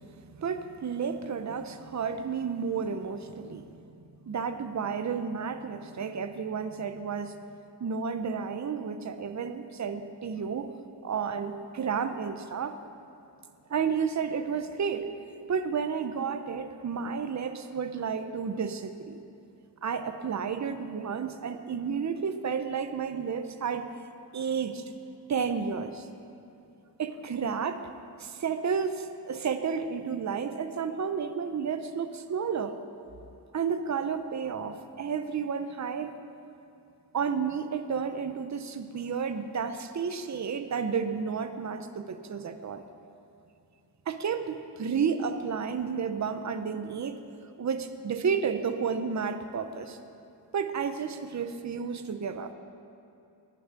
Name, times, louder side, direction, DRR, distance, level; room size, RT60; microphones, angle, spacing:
voice 1, 0.3-3.7 4.2-7.4 7.8-12.8 13.7-15.1 15.5-19.2 19.8-23.9 24.3-24.8 25.3-26.1 27.0-27.8 28.2-32.8 33.5-36.1 37.1-42.8 44.1-47.2 47.6-50.0 50.5-52.5, right 6 dB, 40° right, 9 dB, 0.7 m, -31 dB
19.5 x 7.1 x 5.9 m, 2.8 s
wide cardioid pair, 145°, 42 cm